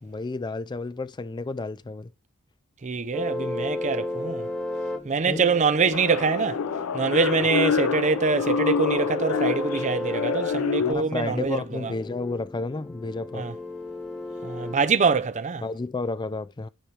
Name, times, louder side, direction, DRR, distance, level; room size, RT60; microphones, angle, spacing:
voice 1, 0.0-2.1 5.3-5.5 10.8-13.5 15.6-16.7, left 3 dB, 20° left, 0.4 m, -31 dB
voice 2, 2.8-4.5 5.1-6.6 6.9-11.9 13.3-13.5 14.4-15.6, right 4 dB, 35° right, 0.5 m, -24 dB
sound 1, 3.1-14.8, left 2 dB, 5° left, 0.8 m, -34 dB
sound 2, 5.9-10.9, left 6 dB, 80° left, 0.4 m, -27 dB
10.0 x 4.3 x 3.2 m
head